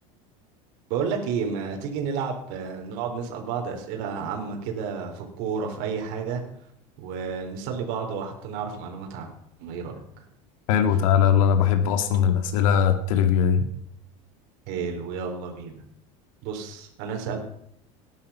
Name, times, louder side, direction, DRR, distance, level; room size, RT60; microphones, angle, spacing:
voice 1, 0.9-6.4 7.0-9.3 9.6-10.0 13.6-13.7 14.7-15.8 16.4-17.4, right 6 dB, 65° right, 2 dB, 4.2 m, -31 dB
voice 2, 10.7-13.6, left 8 dB, 80° left, 7 dB, 2.1 m, -20 dB
19.0 x 11.0 x 5.7 m, 0.72 s
supercardioid pair, 125°, 17 cm